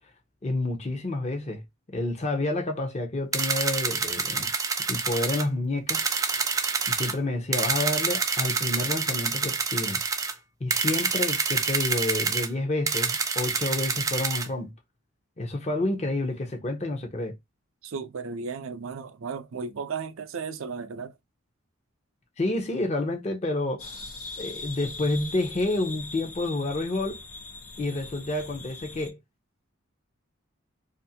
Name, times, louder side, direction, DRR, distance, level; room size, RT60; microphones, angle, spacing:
voice 1, 0.4-1.6 1.9-4.5 4.9-6.0 6.9-10.0 10.6-14.7 15.4-17.4 22.4-24.0 24.4-27.2 27.8-29.2, left 2 dB, 30° left, 0.6 m, -29 dB
sound 1, 3.3-5.4 5.9-7.1 7.5-10.3 10.7-12.5 12.9-14.5, right 5 dB, 15° right, 0.3 m, -27 dB
voice 2, 17.8-21.1, right 5 dB, 75° right, 0.5 m, -35 dB
sound 2, 23.8-29.1, left 3 dB, 85° left, 0.9 m, -41 dB
2.5 x 2.5 x 2.7 m
head